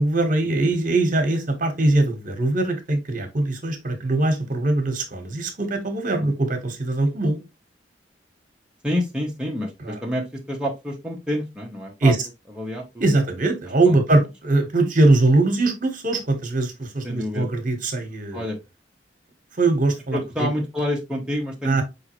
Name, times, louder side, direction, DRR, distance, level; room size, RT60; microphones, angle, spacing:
voice 1, 0.0-7.4 9.8-9.9 12.0-12.2 13.0-18.4 19.6-20.5 21.6-21.8, right 2 dB, 50° right, 1.2 m, -21 dB
voice 2, 8.8-12.1 12.5-13.0 13.9-14.0 17.0-17.5 18.3-18.6 20.1-21.8, left 1 dB, 5° right, 0.9 m, -28 dB
5.0 x 3.5 x 3.0 m
head